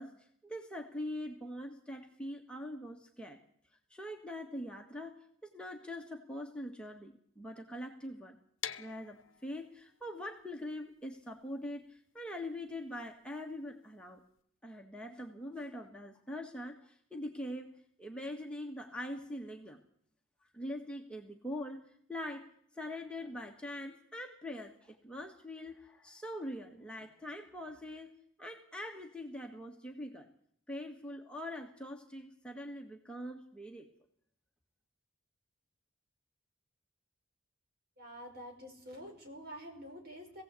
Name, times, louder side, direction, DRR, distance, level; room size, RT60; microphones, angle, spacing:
voice 1, 0.0-3.4 3.9-8.4 8.8-14.2 14.6-17.7 18.0-19.8 20.5-30.3 30.7-33.9, left 1 dB, 5° left, 1 dB, 1.6 m, -43 dB
sound 1, 8.6-14.4, left 10 dB, 70° left, 0.9 m, -48 dB
voice 2, 38.0-40.4, equal, 50° right, 2 dB, 5.0 m, -47 dB
20.5 x 16.5 x 8.3 m, 0.66 s
head